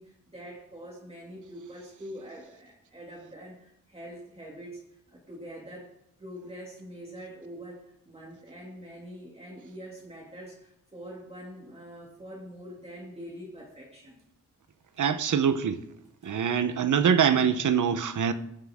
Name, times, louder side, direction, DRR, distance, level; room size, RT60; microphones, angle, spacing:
voice 1, 0.0-5.9 6.2-14.2 15.0-15.1, equal, 20° right, 2.5 m, -44 dB
voice 2, 15.0-15.8 16.2-18.3, right 7 dB, 75° right, 0.9 m, -24 dB
21.5 x 7.6 x 3.7 m
wide cardioid pair, 170°, 30 cm